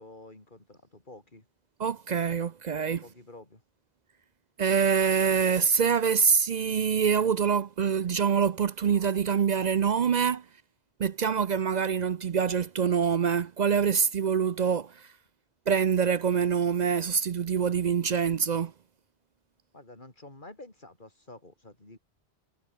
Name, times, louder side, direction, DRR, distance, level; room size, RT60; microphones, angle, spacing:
voice 1, 0.0-1.5 3.0-3.6 19.7-22.0, left 2 dB, 50° left, 4.3 m, -49 dB
voice 2, 1.8-3.0 4.6-10.4 11.0-15.1 15.7-18.7, right 7 dB, 50° right, 0.6 m, -25 dB
omnidirectional pair, 1.1 m